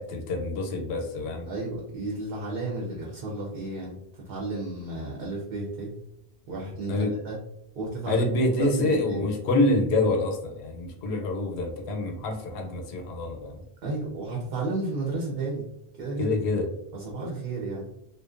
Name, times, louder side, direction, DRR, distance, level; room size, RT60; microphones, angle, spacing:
voice 1, 0.0-1.5 6.9-7.2 8.1-13.6 16.2-16.7, left 2 dB, 90° left, 2 dB, 0.9 m, -26 dB
voice 2, 1.5-4.0 4.3-5.9 6.5-6.9 7.2-7.4 7.7-8.3 8.6-9.3 13.8-15.6 15.9-16.3 16.9-17.9, right 2 dB, 65° right, -3 dB, 0.8 m, -32 dB
2.5 x 2.1 x 2.4 m, 0.79 s
omnidirectional pair, 1.1 m